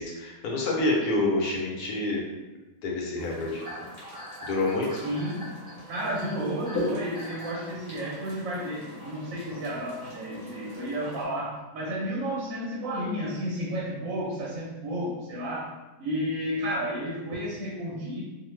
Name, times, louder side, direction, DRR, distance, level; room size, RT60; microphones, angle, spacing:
voice 1, 0.0-2.2 2.8-3.6 4.4-5.0, left 2 dB, 70° left, -1 dB, 1.1 m, -27 dB
sound 1, 3.1-11.2, left 1 dB, 40° left, 1.0 m, -40 dB
sound 2, 3.6-7.7, equal, 35° right, 0.9 m, -43 dB
voice 2, 5.0-5.5 5.9-15.7 16.0-18.2, equal, 65° right, -5 dB, 0.9 m, -32 dB
2.6 x 2.4 x 3.1 m, 1.1 s
omnidirectional pair, 1.7 m